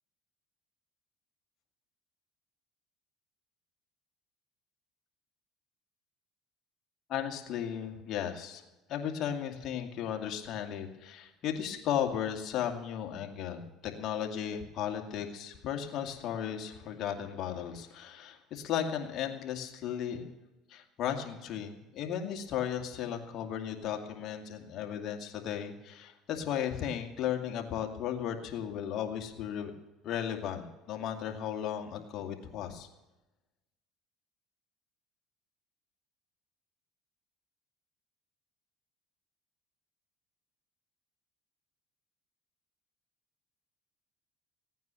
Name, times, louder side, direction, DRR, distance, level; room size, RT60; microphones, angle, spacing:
voice 1, 7.1-8.6 8.9-20.3 20.7-29.7 30.0-32.9, left 9 dB, 55° left, 4 dB, 2.3 m, -35 dB
16.5 x 9.3 x 7.0 m, 1.0 s
supercardioid pair, 100°, 0 cm